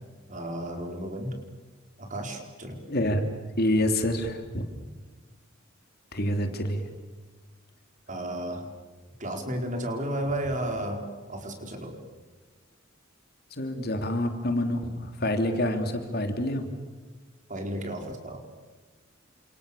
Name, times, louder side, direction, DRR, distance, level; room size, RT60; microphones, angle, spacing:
voice 1, 0.3-1.3 2.0-2.8 8.1-8.7 9.2-12.0 17.5-18.4, right 1 dB, 35° right, 4 dB, 4.7 m, -33 dB
voice 2, 2.9-3.3 3.6-4.7 6.1-6.8 13.5-16.7, left 1 dB, 50° left, 6 dB, 3.0 m, -27 dB
30.0 x 27.0 x 7.0 m, 1.3 s
head